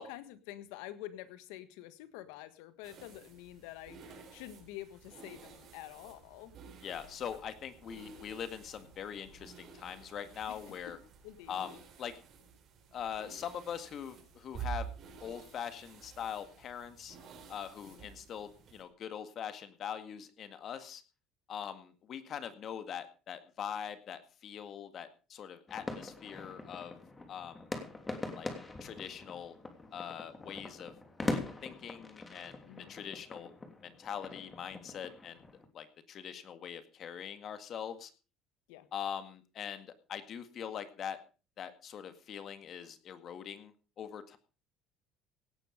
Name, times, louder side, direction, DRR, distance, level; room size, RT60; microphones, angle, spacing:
voice 1, 0.0-6.5 10.5-10.6 10.9-11.0 11.2-11.5 17.8-18.1 32.6-32.9 38.7-38.9, left 14 dB, 85° left, 13 dB, 1.5 m, -48 dB
sound 1, 2.8-18.8, right 6 dB, 50° right, 5.5 m, -50 dB
voice 2, 6.8-11.0 11.5-12.1 12.9-14.9 15.2-17.2 17.5-21.0 21.5-27.0 27.3-27.6 28.4-28.5 28.8-29.6 29.9-30.9 31.3-32.6 32.9-33.5 33.8-35.4 35.7-38.1 38.9-41.2 41.6-44.4, left 8 dB, 50° left, 10 dB, 1.9 m, -42 dB
sound 2, 25.7-35.7, left 2 dB, 20° left, 3.0 m, -42 dB
17.5 x 10.0 x 5.1 m, 0.35 s
supercardioid pair, 100°, 0 cm